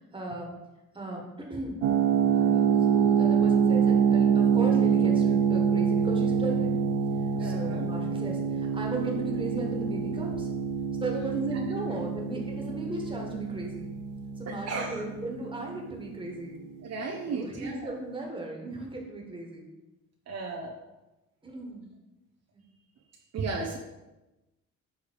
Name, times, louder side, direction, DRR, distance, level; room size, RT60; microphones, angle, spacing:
voice 1, 0.1-0.5 0.9-1.8 2.3-6.8 7.4-10.5 11.0-13.9 14.4-16.6 17.2-19.7 21.4-21.9 22.5-22.6, right 2 dB, 15° right, -1 dB, 1.6 m, -36 dB
sound 1, 1.8-16.6, right 7 dB, 90° right, 0.5 m, -26 dB
voice 2, 7.3-7.9 14.5-15.0 16.8-17.9 20.3-20.8 23.3-23.8, right 4 dB, 55° right, 1 dB, 0.8 m, -34 dB
6.4 x 3.4 x 4.7 m, 1.0 s
cardioid pair, 90°, 30 cm